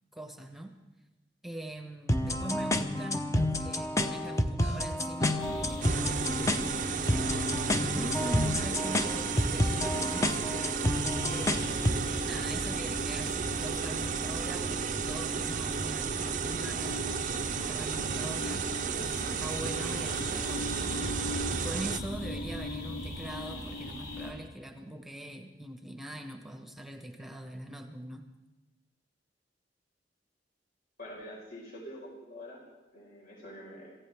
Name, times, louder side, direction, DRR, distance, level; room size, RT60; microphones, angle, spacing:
voice 1, 0.1-0.7 1.4-6.2 7.0-7.3 7.8-10.9 11.3-28.3, right 1 dB, ahead, 5 dB, 1.0 m, -43 dB
sound 1, 2.1-12.1, left 1 dB, 20° left, 0.8 m, -30 dB
sound 2, 5.4-24.3, left 1 dB, 85° left, 3.1 m, -38 dB
sound 3, 5.8-22.0, right 7 dB, 45° right, 0.5 m, -34 dB
voice 2, 31.0-32.6 32.9-33.9, equal, 55° left, -3 dB, 4.7 m, -45 dB
26.5 x 15.5 x 3.5 m, 1.1 s
head